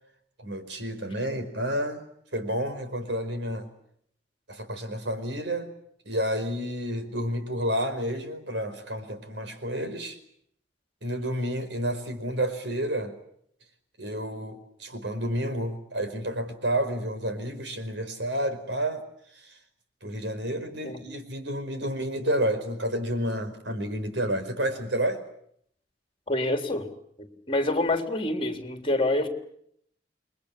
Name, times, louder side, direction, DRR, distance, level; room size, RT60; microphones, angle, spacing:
voice 1, 0.4-2.0 2.3-3.7 4.5-5.7 6.0-10.2 11.0-13.1 14.0-19.0 19.3-19.5 20.0-25.2, equal, 85° right, 8 dB, 4.9 m, -30 dB
voice 2, 26.3-26.9 27.2-29.3, left 2 dB, 30° left, 5 dB, 3.6 m, -27 dB
29.0 x 23.0 x 8.5 m, 0.70 s
head